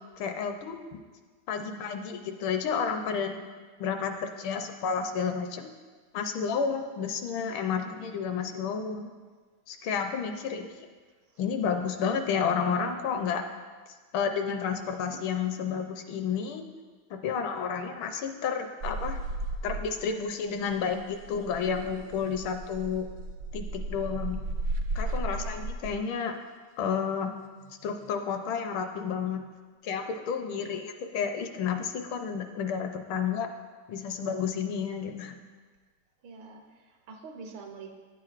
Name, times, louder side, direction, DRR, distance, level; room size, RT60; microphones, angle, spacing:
voice 1, 0.2-0.8 1.5-3.4 3.8-5.7 6.1-9.1 9.7-10.7 11.4-13.4 14.1-16.6 17.1-19.2 19.6-23.1 23.5-24.4 24.9-26.3 26.8-27.3 27.8-29.4 29.8-33.5 33.9-35.4, left 6 dB, 75° left, 6 dB, 1.3 m, -31 dB
voice 2, 10.4-10.8 25.2-25.6 30.7-30.8 36.2-37.9, right 4 dB, 70° right, 2 dB, 1.5 m, -46 dB
sound 1, 18.8-20.2 20.5-25.9 27.7-28.1, right 2 dB, 85° right, 0.8 m, -34 dB
10.0 x 7.6 x 2.4 m, 1.4 s
omnidirectional pair, 2.4 m